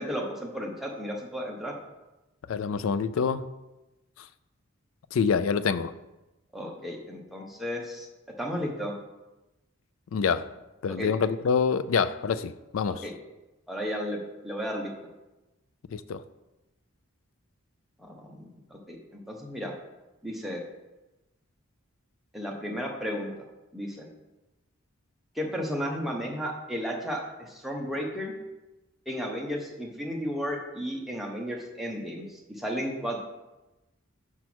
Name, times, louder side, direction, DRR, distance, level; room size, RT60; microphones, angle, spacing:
voice 1, 0.0-1.7 6.5-8.1 8.4-8.9 10.9-11.1 13.0-13.1 13.7-14.9 18.0-19.7 20.2-20.6 22.3-23.3 23.7-24.1 25.3-28.3 29.1-33.2, equal, ahead, 0.8 m, -34 dB
voice 2, 2.5-3.5 5.1-5.9 10.1-10.5 10.8-13.0 15.9-16.2, left 6 dB, 65° left, 0.3 m, -26 dB
6.0 x 4.4 x 6.1 m
head